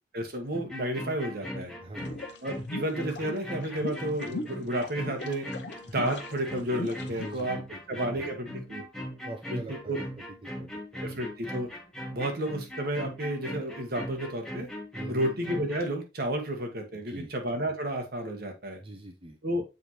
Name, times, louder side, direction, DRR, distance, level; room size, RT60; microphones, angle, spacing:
voice 1, 0.1-1.7 2.4-5.5 5.9-7.6 7.9-9.0 9.5-10.0 11.0-11.7 12.1-14.7 15.1-18.8 19.4-19.6, right 1 dB, 60° right, 3 dB, 1.5 m, -32 dB
sound 1, 0.5-15.8, equal, 5° left, 1.2 m, -39 dB
voice 2, 1.8-2.2 7.0-8.2 9.2-11.2 14.9-15.3 16.9-17.3 18.8-19.4, right 1 dB, 30° right, 3 dB, 0.7 m, -43 dB
sound 2, 2.0-7.4, left 2 dB, 70° left, 0.8 m, -39 dB
7.2 x 4.3 x 3.0 m, 0.26 s
head